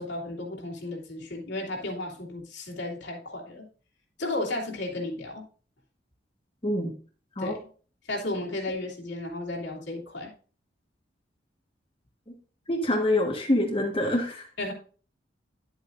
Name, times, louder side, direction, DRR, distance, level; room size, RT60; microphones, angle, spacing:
voice 1, 0.0-3.6 4.2-5.4 7.4-7.6 8.0-10.3 14.6-14.7, left 2 dB, 70° left, -2 dB, 2.8 m, -33 dB
voice 2, 12.7-14.4, left 1 dB, 30° left, 0 dB, 1.5 m, -25 dB
11.5 x 8.0 x 2.6 m, 0.40 s
head